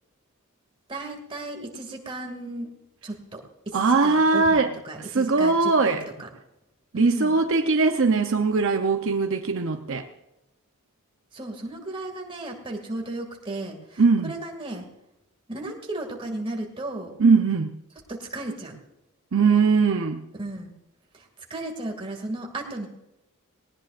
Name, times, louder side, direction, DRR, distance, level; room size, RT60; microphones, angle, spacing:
voice 1, 0.9-2.7 3.0-6.3 6.9-7.4 11.3-14.9 15.5-17.1 18.1-18.8 20.4-20.7 21.5-22.9, right 2 dB, 25° right, 1 dB, 2.3 m, -34 dB
voice 2, 3.7-4.7 5.0-6.0 6.9-10.1 14.0-14.3 17.2-17.7 19.3-20.2, right 4 dB, 60° right, 6 dB, 0.7 m, -21 dB
19.5 x 18.0 x 2.5 m, 0.93 s
head